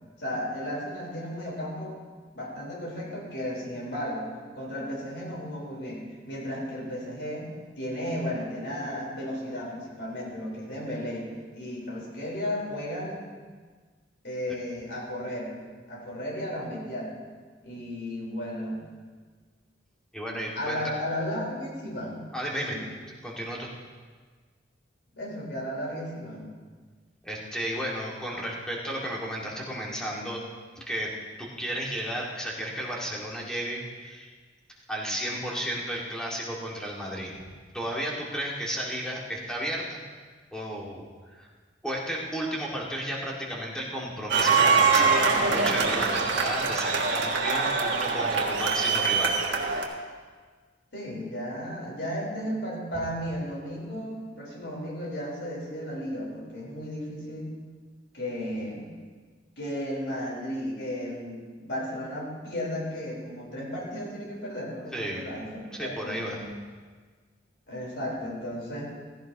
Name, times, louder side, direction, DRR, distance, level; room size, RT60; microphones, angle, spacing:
voice 1, 0.2-2.0 2.3-13.2 14.2-15.6 15.9-17.1 17.6-18.8 20.6-22.2 22.7-22.9 25.2-26.5 50.9-57.6 58.1-58.9 59.6-66.5 67.7-68.9, equal, 70° left, -3 dB, 4.2 m, -34 dB
voice 2, 20.1-20.8 22.3-22.8 23.1-23.7 27.2-30.4 30.8-31.1 31.4-34.3 34.9-37.5 37.7-40.0 40.5-41.1 41.4-41.5 41.8-49.3 64.9-65.2 65.7-66.4, equal, 5° left, -4 dB, 2.1 m, -33 dB
sound 1, 44.3-49.8, right 4 dB, 75° right, 1.5 m, -24 dB
16.0 x 15.0 x 3.0 m, 1.5 s
head